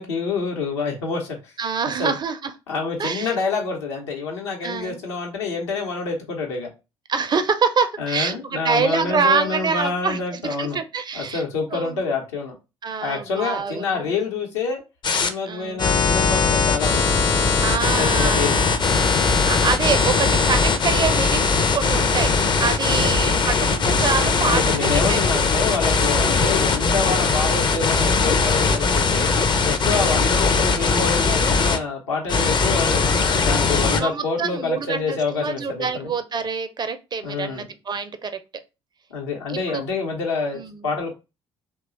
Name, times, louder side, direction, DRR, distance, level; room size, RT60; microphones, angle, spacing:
voice 1, 0.0-1.5 2.0-2.1 2.7-6.7 8.0-10.8 11.1-12.5 13.0-14.8 15.2-17.2 17.8-18.6 22.9-23.1 24.5-29.3 29.6-33.0 33.4-36.1 37.2-37.7 39.1-41.2, left 4 dB, 75° left, 0.8 m, -27 dB
voice 2, 1.6-2.5 3.0-3.3 4.6-5.0 7.1-11.4 11.7-12.0 12.8-14.1 15.4-15.9 17.6-18.5 19.5-22.3 22.6-25.2 29.9-30.1 33.7-38.3 39.5-39.8 40.5-40.9, right 5 dB, 30° right, 0.5 m, -26 dB
sound 1, 15.0-15.3 15.8-31.8 32.3-34.0, left 4 dB, 30° left, 0.5 m, -20 dB
2.9 x 2.2 x 3.9 m
figure-of-eight pair, 50°, 15 cm